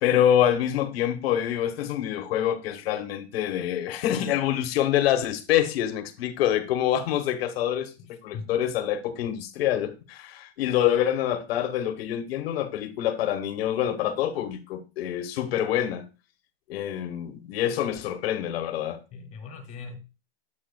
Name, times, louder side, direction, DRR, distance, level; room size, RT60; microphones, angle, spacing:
voice 1, 0.0-7.9 8.2-16.0 16.7-19.0, left 11 dB, 70° left, 1.2 m, -26 dB
voice 2, 8.0-8.5 19.1-20.0, left 5 dB, 25° left, 1.9 m, -40 dB
8.1 x 7.8 x 2.2 m
supercardioid pair, 165°, 31 cm